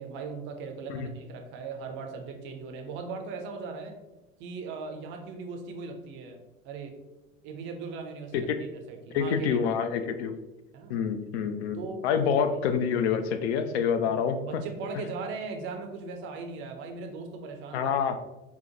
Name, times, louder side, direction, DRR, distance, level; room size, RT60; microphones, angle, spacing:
voice 1, 0.0-4.0 4.4-6.9 7.4-9.7 10.7-11.1 11.7-12.0 14.0-18.1, right 4 dB, 30° right, 4 dB, 0.5 m, -39 dB
voice 2, 9.1-10.3 10.9-11.8 12.0-14.6 17.7-18.2, left 7 dB, 55° left, 10 dB, 0.4 m, -27 dB
4.4 x 2.1 x 2.7 m, 1.0 s
figure-of-eight pair, 75°, 41 cm